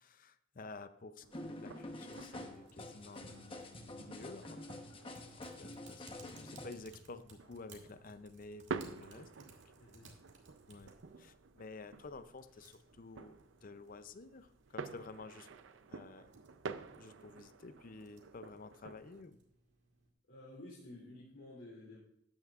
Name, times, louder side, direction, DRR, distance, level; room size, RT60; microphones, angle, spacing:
voice 1, 0.0-4.6 5.3-9.5 10.7-15.5 15.9-16.3 16.9-19.4, left 3 dB, 45° left, 12 dB, 0.5 m, -52 dB
sound 1, 1.2-19.2, right 4 dB, 80° right, 0.6 m, -50 dB
sound 2, 1.3-6.7, left 1 dB, 30° left, 1.0 m, -48 dB
Typing, 2.1-20.1, right 3 dB, 65° right, 1.9 m, -64 dB
voice 2, 20.3-22.0, left 1 dB, 75° left, -6 dB, 2.9 m, -52 dB
13.0 x 9.3 x 2.5 m, 0.73 s
head